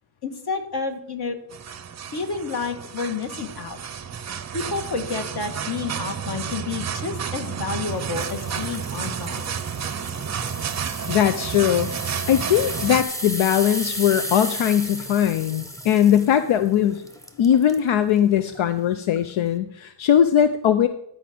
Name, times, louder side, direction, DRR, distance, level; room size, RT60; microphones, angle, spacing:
voice 1, 0.2-1.4 2.1-3.8 4.5-9.4, left 4 dB, 55° left, 6 dB, 1.6 m, -30 dB
sound 1, 1.5-13.0, right 7 dB, 35° right, 0.5 m, -31 dB
sound 2, 8.0-17.9 18.4-18.6 19.2-19.3, equal, 5° left, 0.9 m, -35 dB
voice 2, 11.1-11.9 12.3-17.0 17.4-20.9, left 10 dB, 85° left, 11 dB, 0.6 m, -20 dB
11.0 x 4.8 x 7.6 m, 0.75 s
wide cardioid pair, 145°, 46 cm